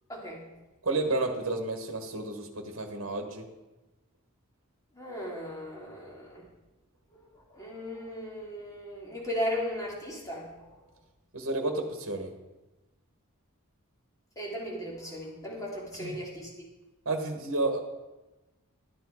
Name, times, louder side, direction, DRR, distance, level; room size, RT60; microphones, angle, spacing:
voice 1, 0.1-0.4 4.9-6.4 7.1-7.2 7.5-10.5 14.4-16.5, equal, 15° left, -4 dB, 3.0 m, -36 dB
voice 2, 0.8-3.5 11.3-12.3 16.0-16.2 17.0-17.8, right 2 dB, 65° right, 4 dB, 1.4 m, -31 dB
12.5 x 9.4 x 4.8 m, 1.1 s
head